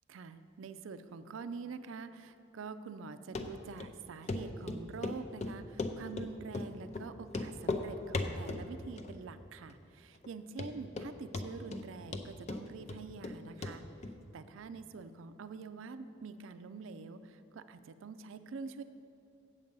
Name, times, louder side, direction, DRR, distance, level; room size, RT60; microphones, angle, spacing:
voice 1, 0.1-13.8 14.3-18.8, right 4 dB, 75° right, 11 dB, 0.4 m, -46 dB
Run, 3.3-3.5 3.8-3.9 4.3-4.4 4.7-5.2 5.4-6.3 6.5-6.7 6.9-7.0 7.3-7.8 8.1-8.6 9.0-9.4 9.7-9.8 10.2-10.3 10.6-11.1 11.3-11.8 12.1-13.3 13.6-13.7 14.0-14.1, left 3 dB, 35° left, 0.5 m, -36 dB
8.0 x 7.3 x 5.3 m, 2.9 s
head